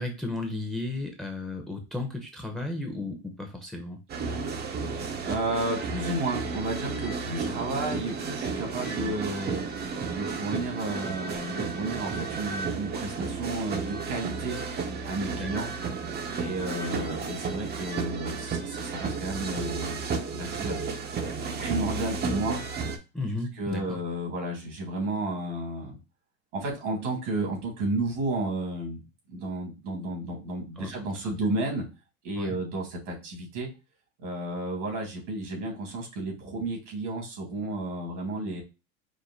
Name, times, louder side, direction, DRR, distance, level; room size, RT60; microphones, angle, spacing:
voice 1, 0.0-4.0 15.3-15.5 23.1-24.0 30.8-30.9 31.2-31.4 32.4-32.6 38.5-38.6, left 2 dB, ahead, 3 dB, 0.9 m, -34 dB
sound 1, 4.1-23.0, right 4 dB, 30° right, 0.8 m, -33 dB
voice 2, 5.2-9.6 10.1-14.6 15.0-15.7 16.4-20.0 20.3-20.7 21.6-22.6 23.6-26.0 26.5-29.0 29.3-31.8 32.2-33.7 34.2-38.6, right 2 dB, 85° right, 0 dB, 2.6 m, -32 dB
5.1 x 2.1 x 4.1 m, 0.28 s
supercardioid pair, 105°, 35 cm